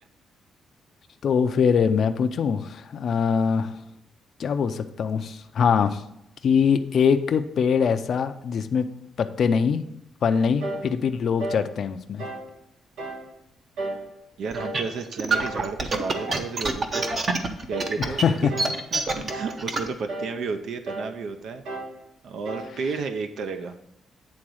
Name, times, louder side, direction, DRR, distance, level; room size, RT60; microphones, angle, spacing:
voice 1, 1.2-3.8 4.4-6.0 6.4-8.9 9.2-9.9 10.2-12.2 18.0-18.5, left 6 dB, 50° left, 8 dB, 0.5 m, -23 dB
sound 1, 10.6-10.9 11.4-11.7 12.2-12.5 13.0-13.3 13.8-14.1 14.5-14.9 15.3-15.6 16.1-16.4 16.9-17.2 17.7-18.0 18.5-18.8 19.3-19.6 20.1-20.4 20.9-21.2 21.7-22.0 22.5-22.8, right 2 dB, 90° right, 1.7 m, -33 dB
voice 2, 14.4-17.1 17.7-21.6 22.2-23.8, right 5 dB, 65° right, 8 dB, 0.6 m, -32 dB
sound 2, 14.5-19.9, right 3 dB, 35° right, 0.8 m, -26 dB
8.7 x 3.9 x 6.2 m, 0.83 s
cardioid pair, 155°, 0 cm